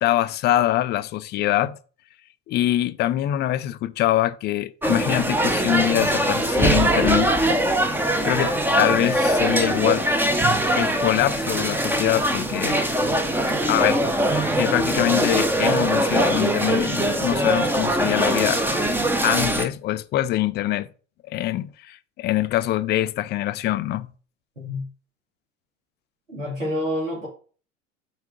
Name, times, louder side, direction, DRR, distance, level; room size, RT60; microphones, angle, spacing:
voice 1, 0.0-1.8 2.5-7.3 8.2-10.1 10.8-12.8 13.6-14.0 14.6-18.6 19.2-20.9 21.2-24.1, left 13 dB, 25° left, 0.5 m, -24 dB
sound 1, 4.8-19.6, right 1 dB, 5° right, 0.8 m, -22 dB
voice 2, 26.3-27.3, left 1 dB, 90° right, 3.1 m, -28 dB
5.8 x 4.7 x 5.1 m
figure-of-eight pair, 85°, 38 cm